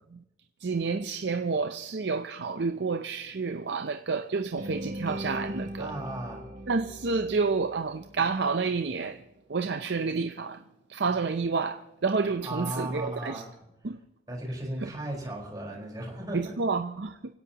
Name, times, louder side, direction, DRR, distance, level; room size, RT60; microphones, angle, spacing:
voice 1, 0.6-5.9 6.7-9.2 9.5-10.6 10.9-13.4 13.8-14.0 14.8-14.9 16.3-17.4, right 4 dB, 65° right, 0.6 m, -29 dB
sound 1, 4.6-8.6, equal, 45° right, 2.9 m, -40 dB
voice 2, 5.8-6.4 12.4-13.5 14.3-16.5, right 1 dB, 20° right, 4.5 m, -36 dB
25.5 x 16.5 x 2.9 m
head